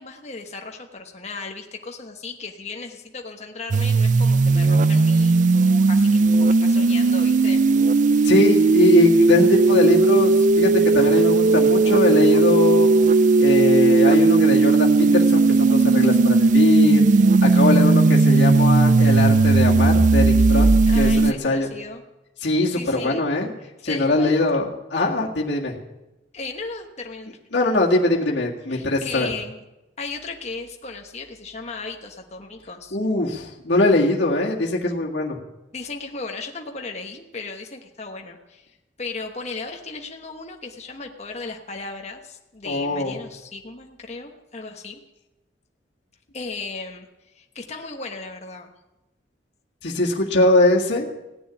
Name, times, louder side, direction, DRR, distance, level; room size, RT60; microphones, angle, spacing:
voice 1, 0.0-7.6 20.9-22.0 22.6-23.3 23.8-24.7 26.3-27.4 28.7-29.6 30.0-33.0 35.7-45.0 46.3-48.7, left 3 dB, 40° left, 3 dB, 1.2 m, -36 dB
sound 1, 3.7-21.3, right 3 dB, 45° right, 0.4 m, -16 dB
voice 2, 8.2-12.9 13.4-17.0 17.4-20.7 20.9-21.7 22.4-23.5 23.8-25.8 27.5-29.3 32.9-35.4 42.6-43.2 49.8-51.1, left 2 dB, 75° left, -3 dB, 2.0 m, -21 dB
16.5 x 7.0 x 10.0 m, 1.0 s
head